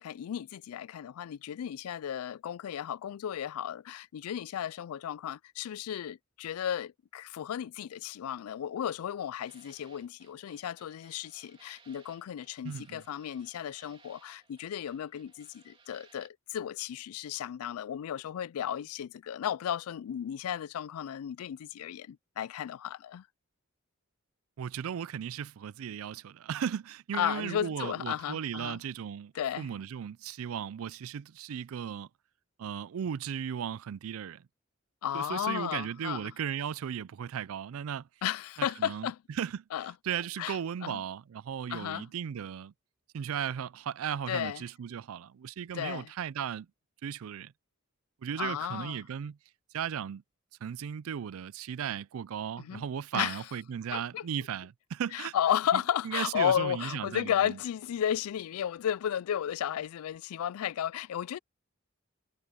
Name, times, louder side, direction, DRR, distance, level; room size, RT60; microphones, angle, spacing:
voice 1, 0.0-23.3 27.1-28.8 29.3-29.7 35.0-36.3 38.2-39.2 39.7-39.9 40.4-41.0 41.7-42.1 44.3-44.6 45.7-46.1 48.4-49.0 52.6-52.8 53.1-53.4 53.9-54.3 55.1-61.4, left 9 dB, 90° left, 0.3 m, -34 dB
sound 1, 9.5-16.3, right 5 dB, 25° right, 3.0 m, -62 dB
voice 2, 12.6-13.0 24.6-32.1 32.6-34.5 35.1-38.1 38.8-39.1 39.4-39.6 40.0-42.7 43.1-46.7 47.0-47.5 48.2-49.4 49.7-50.2 50.6-55.3 55.7-57.6, right 8 dB, 80° right, 0.4 m, -36 dB
head